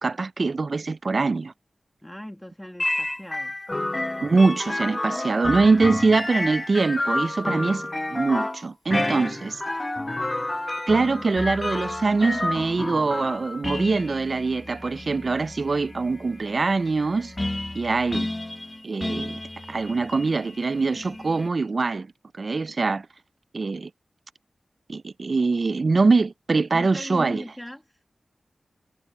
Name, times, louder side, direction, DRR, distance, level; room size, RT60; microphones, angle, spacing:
voice 1, 0.0-1.5 4.2-7.8 8.1-9.6 10.9-17.3 17.7-18.3 18.8-19.4 19.7-22.1 22.4-23.1 23.5-23.9 24.9-27.4, right 3 dB, 55° right, 0.4 m, -23 dB
voice 2, 2.0-3.6 26.7-28.0, equal, 5° left, 1.6 m, -39 dB
sound 1, 2.8-21.5, left 1 dB, 25° left, 0.9 m, -30 dB
wide cardioid pair, 70°, 0 cm